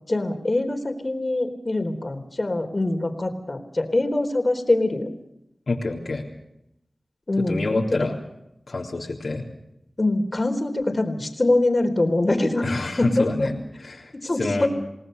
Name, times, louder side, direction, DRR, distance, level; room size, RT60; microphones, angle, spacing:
voice 1, 0.1-5.1 7.3-7.7 10.0-12.7 13.0-13.5 14.1-14.7, left 2 dB, 45° left, 6 dB, 4.0 m, -23 dB
voice 2, 5.7-6.2 7.5-8.1 8.7-9.4 12.6-14.1 14.4-14.7, left 2 dB, 75° left, -2 dB, 3.8 m, -27 dB
28.5 x 18.5 x 6.8 m, 0.83 s
wide cardioid pair, 55°, 0 cm